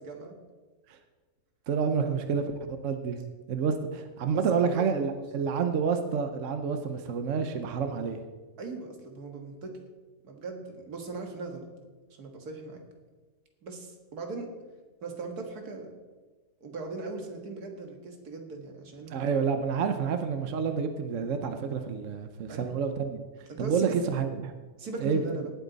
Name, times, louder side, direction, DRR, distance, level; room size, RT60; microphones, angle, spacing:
voice 1, 0.1-0.4 2.0-2.2 4.3-5.1 8.6-9.7 10.2-11.7 12.2-12.8 13.6-14.5 15.0-15.9 16.6-19.2 22.5-22.7 23.5-24.0 24.8-25.5, right 3 dB, 85° right, 3 dB, 2.2 m, -39 dB
voice 2, 1.7-3.2 3.5-8.2 19.1-23.2 23.6-24.5 25.0-25.2, right 6 dB, 60° right, 7 dB, 1.1 m, -29 dB
18.5 x 8.5 x 4.1 m, 1.3 s
omnidirectional pair, 1.6 m